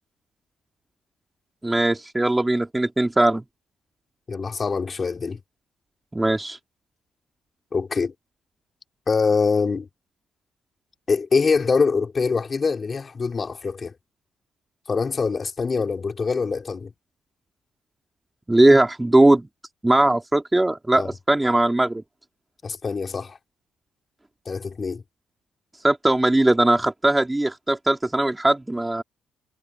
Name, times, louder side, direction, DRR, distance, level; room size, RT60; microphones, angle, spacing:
voice 1, 1.6-3.4 6.1-6.6 18.5-19.5 19.8-22.0 25.8-29.0, right 1 dB, 10° right, 3.0 m, -19 dB
voice 2, 4.3-5.4 7.7-8.1 9.1-9.9 11.1-13.9 14.9-16.9 21.0-21.1 22.6-23.4 24.5-25.0, left 5 dB, 35° left, 4.5 m, -24 dB
cardioid pair, 90°, 0 cm